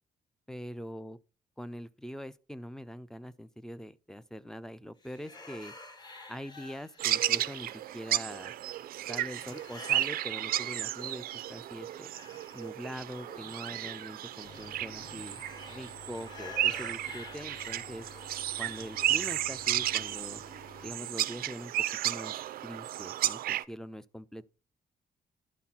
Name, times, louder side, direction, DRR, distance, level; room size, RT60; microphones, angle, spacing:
voice 1, 0.5-1.2 1.6-5.7 6.3-8.5 9.1-12.1 12.5-18.1 18.6-20.4 20.8-21.7 22.0-22.3 22.6-24.5, equal, 5° left, 0.4 m, -43 dB
sound 1, 5.0-8.2 9.3-11.3 11.6-20.1, left 3 dB, 30° left, 1.3 m, -51 dB
sound 2, 7.0-23.6, right 13 dB, 80° right, 0.4 m, -33 dB
sound 3, 14.4-20.9, left 3 dB, 85° left, 3.4 m, -52 dB
11.5 x 4.2 x 5.7 m
cardioid pair, 140°, 15 cm